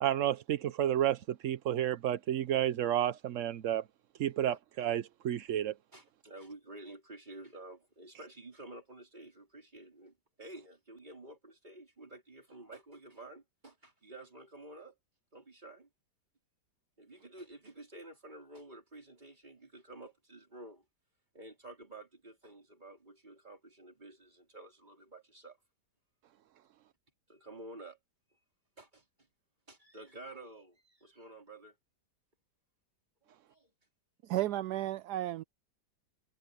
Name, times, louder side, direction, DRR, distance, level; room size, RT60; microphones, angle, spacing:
voice 1, 0.0-3.8 4.2-5.7, right 11 dB, 60° right, 0.9 m, -31 dB
voice 2, 5.9-15.0 15.3-15.9 17.0-20.8 21.3-25.6 27.3-28.0 28.8-29.1 29.7-31.8 33.3-33.7, right 2 dB, 25° right, 4.1 m, -51 dB
voice 3, 34.2-35.4, right 14 dB, 80° right, 1.2 m, -33 dB
omnidirectional pair, 1.8 m